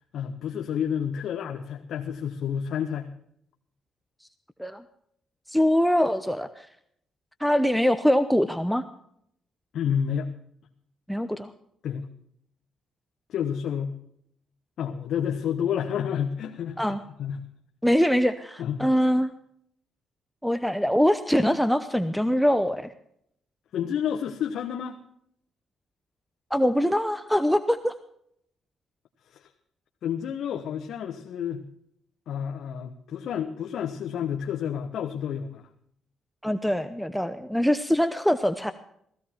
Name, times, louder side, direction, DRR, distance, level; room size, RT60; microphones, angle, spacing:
voice 1, 0.1-3.1 9.7-10.3 11.8-12.1 13.3-13.9 14.8-17.4 18.6-18.8 23.7-25.0 29.3-29.5 30.0-31.6 32.3-35.6, left 8 dB, 70° left, 4 dB, 1.2 m, -30 dB
voice 2, 5.5-6.7 7.4-8.8 11.1-11.5 16.8-17.0 17.8-19.3 20.4-22.9 26.5-27.9 36.4-38.7, equal, ahead, 9 dB, 0.8 m, -23 dB
16.0 x 15.5 x 4.5 m, 0.71 s
cardioid pair, 90°, 0 cm